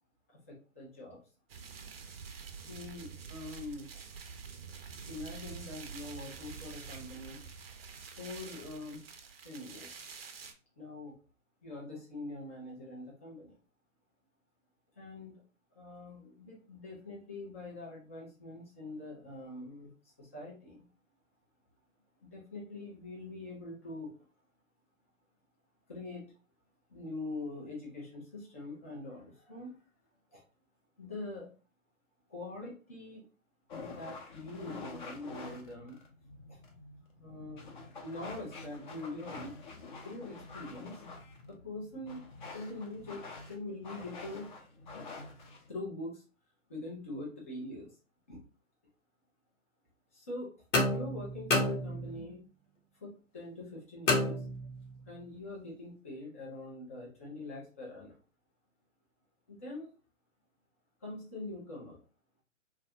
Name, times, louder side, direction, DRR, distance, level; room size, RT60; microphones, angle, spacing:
voice 1, 0.3-1.2 2.5-4.0 5.1-7.4 8.0-9.0 9.4-10.0 10.8-11.1 11.6-13.6 15.0-15.4 15.7-19.9 20.2-20.8 22.2-24.1 25.9-26.4 26.9-29.8 30.3-30.4 31.0-31.5 32.3-33.2 33.8-36.0 36.5-36.6 37.2-37.7 38.0-39.6 40.0-41.0 41.5-44.5 45.7-46.2 46.7-48.0 48.3-48.4 50.1-50.5 50.9-52.4 53.0-54.4 55.1-58.2 59.5-59.9 61.0-62.0, left 2 dB, 10° left, -5 dB, 0.4 m, -44 dB
sound 1, 1.5-10.5, right 6 dB, 50° right, 0.6 m, -47 dB
sound 2, 33.7-45.7, left 3 dB, 35° left, 0.8 m, -47 dB
sound 3, 50.7-52.4 54.1-55.0, left 2 dB, 65° left, 1.0 m, -30 dB
3.2 x 2.4 x 2.8 m, 0.35 s
figure-of-eight pair, 135°, 40 cm